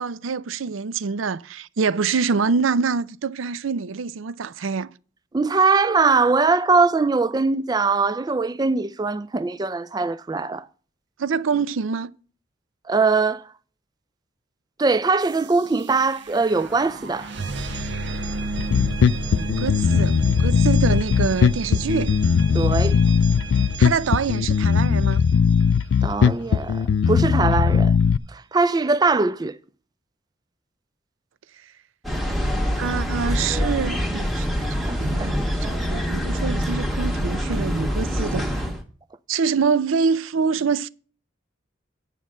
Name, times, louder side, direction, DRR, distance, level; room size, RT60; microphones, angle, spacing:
voice 1, 0.0-4.9 11.2-12.1 19.3-22.1 23.8-25.2 32.8-38.7 39.3-40.9, right 5 dB, 85° right, 0.5 m, -25 dB
voice 2, 5.3-10.7 12.9-13.5 14.8-17.3 22.5-23.0 26.0-27.9 28.3-29.6 34.9-35.4, right 4 dB, 20° right, 0.3 m, -21 dB
sound 1, 15.2-26.0, right 2 dB, 60° right, 1.3 m, -32 dB
Bass guitar, 18.6-28.2, left 6 dB, 75° left, 0.3 m, -19 dB
sound 2, 32.0-38.8, equal, ahead, 1.3 m, -25 dB
9.2 x 5.4 x 6.2 m
head